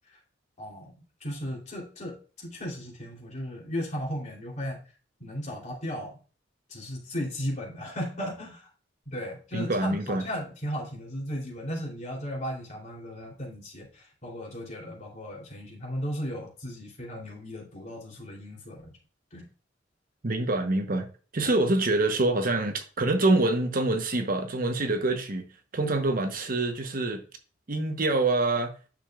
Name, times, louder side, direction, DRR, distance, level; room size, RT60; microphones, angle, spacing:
voice 1, 0.6-0.9 1.2-4.8 5.2-6.2 6.7-8.7 9.0-18.9 19.3-19.5 21.4-21.5, equal, 40° left, 3.3 m, -36 dB
voice 2, 9.5-10.3 20.2-21.1 21.3-25.5 25.7-27.2 27.7-28.7, right 2 dB, 50° right, 1.0 m, -25 dB
9.6 x 6.6 x 2.4 m
head